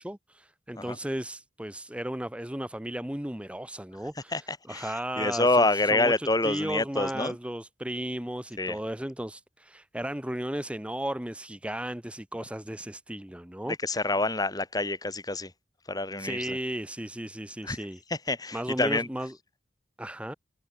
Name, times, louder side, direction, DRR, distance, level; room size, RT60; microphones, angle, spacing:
voice 1, 0.0-13.8 16.2-18.0 18.5-19.3 20.0-20.3, right 1 dB, 5° right, 0.9 m, -35 dB
voice 2, 4.3-7.4 8.6-8.8 13.6-15.5 15.9-16.6 17.6-17.8 18.1-19.1, left 2 dB, 20° left, 4.1 m, -27 dB
head